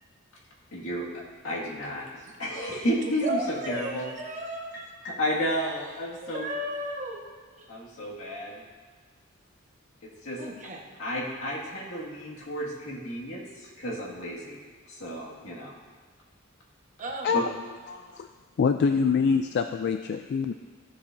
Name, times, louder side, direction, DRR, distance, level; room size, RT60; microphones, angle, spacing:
voice 1, 0.7-4.0 5.0-6.5 7.7-8.6 10.0-10.4 11.0-14.6 14.9-15.7 17.3-17.5, equal, 80° left, -5 dB, 2.1 m, -32 dB
voice 2, 3.0-4.8 5.8-5.9 6.2-7.2 7.5-7.7 10.4-10.9 17.0-17.3, right 1 dB, 40° right, -1 dB, 1.3 m, -34 dB
voice 3, 17.9-18.3 18.6-20.5, left 5 dB, 55° left, 8 dB, 0.3 m, -25 dB
15.0 x 7.1 x 2.7 m, 1.5 s
head